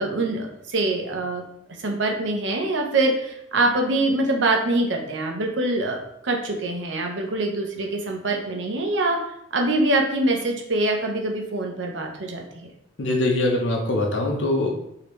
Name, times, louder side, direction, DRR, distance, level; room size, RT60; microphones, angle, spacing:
voice 1, 0.0-1.4 1.8-6.0 6.2-9.2 9.5-12.7, right 2 dB, 80° right, 2 dB, 0.8 m, -24 dB
voice 2, 13.0-14.7, left 2 dB, 80° left, 1 dB, 0.8 m, -22 dB
5.0 x 2.8 x 3.1 m, 0.76 s
head